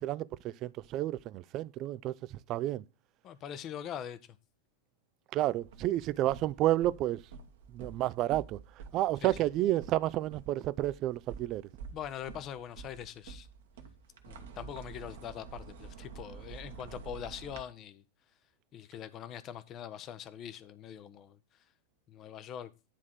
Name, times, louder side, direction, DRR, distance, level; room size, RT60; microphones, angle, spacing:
voice 1, 0.0-2.8 5.3-7.2 7.7-8.6 8.9-11.6, right 14 dB, 35° right, 0.4 m, -31 dB
voice 2, 3.2-4.2 9.2-9.3 11.9-13.5 14.3-18.0 18.7-21.4 22.1-22.7, left 9 dB, 35° left, 0.7 m, -43 dB
sound 1, 5.5-17.6, right 6 dB, 60° right, 1.2 m, -49 dB
10.0 x 3.6 x 5.9 m
figure-of-eight pair, 90°, 0 cm